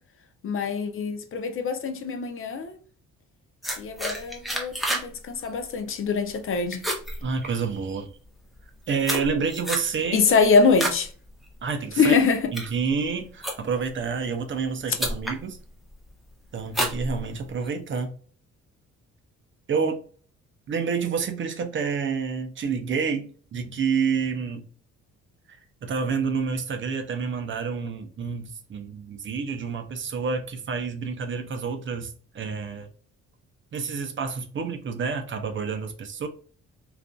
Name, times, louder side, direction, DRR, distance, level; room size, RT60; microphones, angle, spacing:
voice 1, 0.4-2.8 3.8-6.8 10.1-11.1 12.0-12.5, left 5 dB, 45° left, 0.5 m, -23 dB
sound 1, 3.6-5.1 5.4-5.7 6.1-6.4 6.7-7.9 8.5-11.0 11.4-11.8 12.3-13.9 14.6-14.7 15.0-15.4 15.9-16.2 16.7-17.7, equal, ahead, 0.6 m, -30 dB
voice 2, 7.2-8.1 8.9-10.3 11.6-12.2 12.5-15.6 16.5-18.1 19.7-20.0 20.7-24.7 25.8-32.9 33.7-36.3, right 5 dB, 40° right, 0.5 m, -28 dB
2.5 x 2.4 x 2.2 m
cardioid pair, 90°, 30 cm